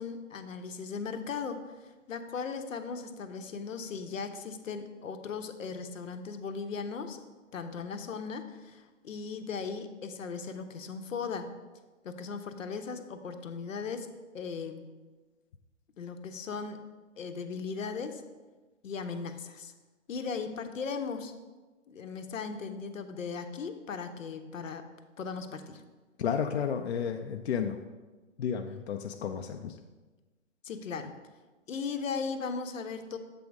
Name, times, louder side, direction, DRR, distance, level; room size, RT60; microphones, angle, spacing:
voice 1, 0.0-7.2 7.5-11.5 12.0-14.1 14.3-14.8 16.0-16.8 17.2-18.2 18.8-19.7 20.1-21.3 21.9-24.8 25.2-25.8 30.6-31.1 31.7-33.2, left 5 dB, 80° left, 8 dB, 0.9 m, -37 dB
voice 2, 26.2-27.8 28.4-29.8, left 7 dB, 55° left, 5 dB, 0.5 m, -32 dB
7.6 x 3.6 x 5.1 m, 1.2 s
hypercardioid pair, 155°, 39 cm